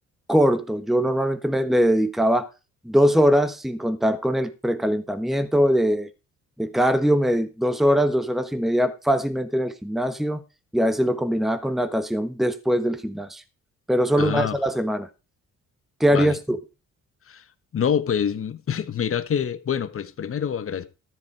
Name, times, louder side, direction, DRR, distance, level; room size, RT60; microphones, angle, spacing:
voice 1, 0.3-2.5 2.8-6.1 6.6-10.4 10.7-13.4 13.9-15.1 16.0-16.6, equal, ahead, 1.2 m, -22 dB
voice 2, 14.2-14.6 16.1-16.4 17.3-17.4 17.7-20.9, left 8 dB, 45° left, 1.3 m, -26 dB
13.0 x 7.8 x 4.7 m
cardioid pair, 90°, 30 cm